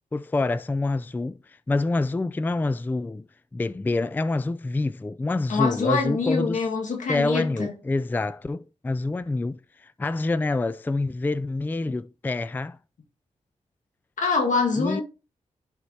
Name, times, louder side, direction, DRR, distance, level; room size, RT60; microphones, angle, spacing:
voice 1, 0.1-3.2 3.5-6.6 7.1-12.8 14.8-15.0, left 2 dB, 15° left, 0.3 m, -27 dB
voice 2, 5.5-7.7 14.2-15.0, left 4 dB, 85° left, 1.8 m, -25 dB
11.0 x 4.6 x 2.8 m
cardioid pair, 75°, 13 cm